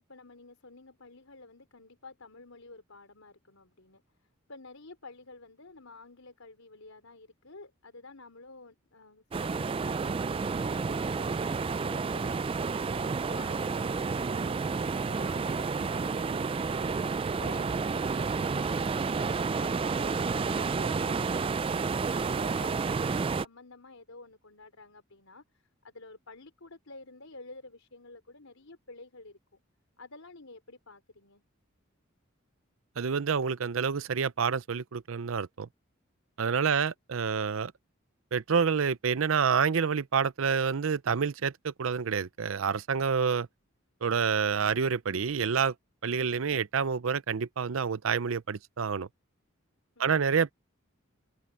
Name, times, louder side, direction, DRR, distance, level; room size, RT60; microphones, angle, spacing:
voice 1, 0.1-4.0 4.5-12.5 13.1-17.0 17.4-29.6 30.0-31.4 50.0-50.3, left 3 dB, 85° left, 4.2 m, -51 dB
sound 1, 9.3-23.4, right 4 dB, 25° right, 0.3 m, -30 dB
voice 2, 33.0-35.7 36.4-37.7 38.3-43.5 44.0-45.7 46.0-49.1 50.0-50.5, right 6 dB, 80° right, 0.6 m, -28 dB
head